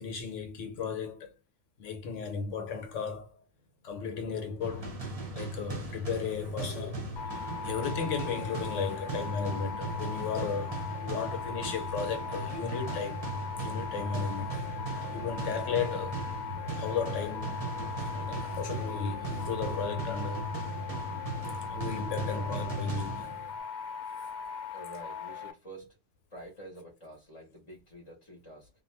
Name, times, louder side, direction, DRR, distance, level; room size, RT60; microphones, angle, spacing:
voice 1, 0.0-1.3 1.8-3.4 3.8-4.9 5.3-13.2 13.6-14.6 15.1-16.3 16.8-17.6 18.1-20.5 21.7-23.3, left 6 dB, 75° left, 1.1 m, -35 dB
sound 1, 4.6-23.6, right 2 dB, 35° right, 0.7 m, -38 dB
sound 2, 7.2-25.5, left 6 dB, 60° left, 0.5 m, -39 dB
voice 2, 24.7-26.0 26.3-28.7, right 1 dB, 30° left, 0.8 m, -48 dB
2.6 x 2.2 x 3.1 m
omnidirectional pair, 1.3 m